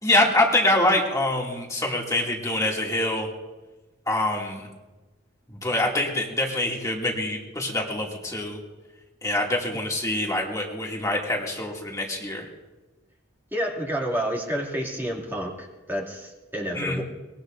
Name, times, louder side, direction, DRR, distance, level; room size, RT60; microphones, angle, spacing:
voice 1, 0.0-3.3 4.1-4.7 5.6-8.6 9.2-12.5 16.7-17.0, left 1 dB, 15° left, -2 dB, 2.4 m, -25 dB
voice 2, 13.5-17.0, equal, 10° right, -2 dB, 2.4 m, -29 dB
24.0 x 21.5 x 2.6 m, 1.2 s
head